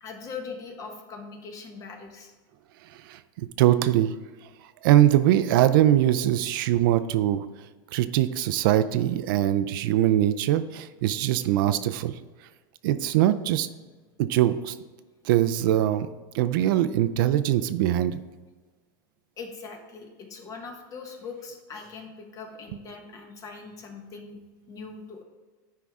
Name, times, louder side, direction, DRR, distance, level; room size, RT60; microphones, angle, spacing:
voice 1, 0.0-2.3 19.4-24.4 24.7-25.2, left 4 dB, 30° left, 3 dB, 1.2 m, -41 dB
voice 2, 3.6-4.1 4.8-7.4 7.9-12.1 12.8-13.7 14.2-14.7 15.3-16.1 16.3-18.2, right 12 dB, 70° right, 13 dB, 0.5 m, -22 dB
10.0 x 4.9 x 3.6 m, 1.4 s
supercardioid pair, 145°, 12 cm